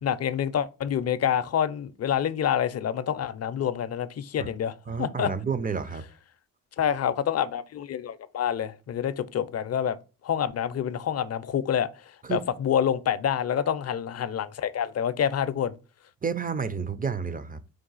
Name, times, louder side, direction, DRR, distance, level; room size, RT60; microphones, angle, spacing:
voice 1, 0.0-5.3 6.8-10.0 10.2-11.9 12.3-15.7, left 9 dB, 45° left, 0.5 m, -27 dB
voice 2, 4.9-6.0 12.2-12.4 16.2-17.6, right 6 dB, 25° right, 0.4 m, -30 dB
4.7 x 2.3 x 3.9 m
cardioid pair, 70°, 36 cm